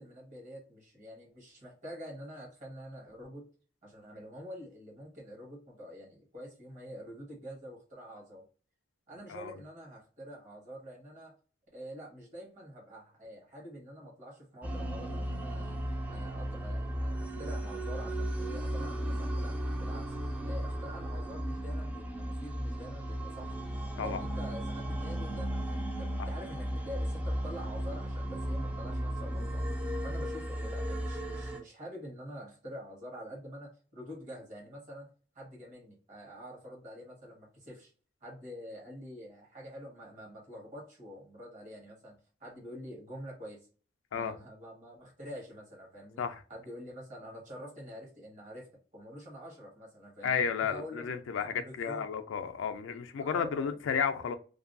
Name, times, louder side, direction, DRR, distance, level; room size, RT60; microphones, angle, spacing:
voice 1, 0.0-3.5 3.8-8.4 9.1-11.3 11.7-15.8 16.1-20.1 20.4-23.6 24.0-29.6 30.0-37.9 38.2-43.7 44.1-46.2 46.5-48.7 48.9-51.1 51.4-52.1 53.2-53.8, equal, 40° right, 1.2 m, -47 dB
sound 1, 14.6-31.6, right 1 dB, 10° right, 0.4 m, -35 dB
voice 2, 50.2-54.4, left 6 dB, 70° left, 0.3 m, -32 dB
2.6 x 2.2 x 2.5 m
head